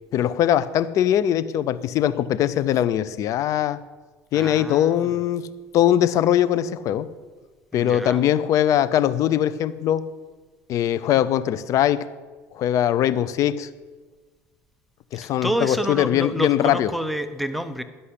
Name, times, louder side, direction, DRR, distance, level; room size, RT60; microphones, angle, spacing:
voice 1, 0.1-3.8 4.3-5.5 5.7-7.1 7.7-10.0 10.7-12.1 12.5-13.7 15.1-16.9, left 11 dB, 55° left, 15 dB, 0.6 m, -21 dB
voice 2, 4.3-5.1 7.7-8.2 15.2-17.8, equal, ahead, 10 dB, 0.8 m, -28 dB
11.5 x 5.5 x 8.6 m, 1.3 s
supercardioid pair, 95°, 7 cm